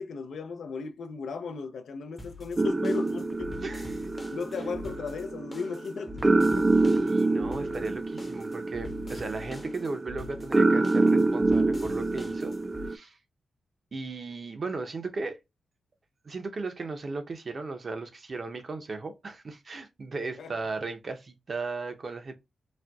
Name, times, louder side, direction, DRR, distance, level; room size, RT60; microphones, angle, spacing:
voice 1, 0.0-3.9 4.3-6.7 20.1-20.6, left 5 dB, 75° left, 0.4 m, -36 dB
sound 1, 2.2-12.9, left 3 dB, 20° left, 0.7 m, -45 dB
sound 2, 2.6-13.0, right 2 dB, 25° right, 0.3 m, -26 dB
voice 2, 3.6-4.1 6.9-12.5 12.9-13.2 13.9-15.4 16.2-22.3, right 3 dB, 45° right, 0.7 m, -36 dB
4.2 x 2.2 x 2.3 m
cardioid pair, 90°, 0 cm